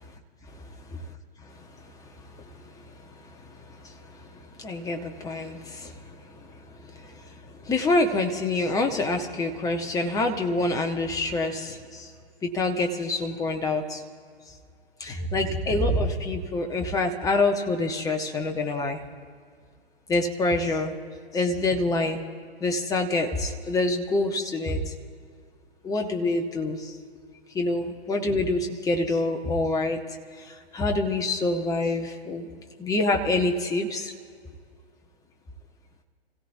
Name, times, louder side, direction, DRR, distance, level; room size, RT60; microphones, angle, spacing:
voice 1, 2.4-2.8 3.7-3.9 4.6-6.2 6.9-7.2 7.6-12.1 12.4-14.0 15.0-19.0 20.1-20.9 21.3-22.2 22.6-24.8 25.8-26.9 27.5-30.0 30.4-32.5 32.8-34.1, left 2 dB, 10° left, 5 dB, 1.2 m, -26 dB
29.5 x 16.5 x 2.7 m, 2.1 s
figure-of-eight pair, 125°, 32 cm